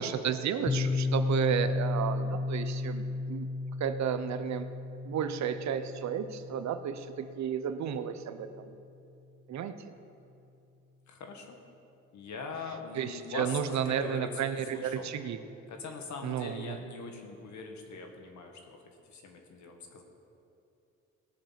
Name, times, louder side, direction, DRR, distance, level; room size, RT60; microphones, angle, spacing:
voice 1, 0.0-3.5 3.8-4.7 5.0-8.8 9.5-9.8 12.9-15.4 16.2-16.8, right 8 dB, 65° right, 10 dB, 0.8 m, -32 dB
Piano, 0.7-8.1, left 3 dB, 25° left, 1.2 m, -34 dB
voice 2, 11.1-11.6 12.1-14.3 14.7-15.1 15.7-20.0, left 4 dB, 70° left, 3 dB, 1.9 m, -42 dB
18.0 x 7.0 x 5.9 m, 2.7 s
cardioid pair, 90°, 30 cm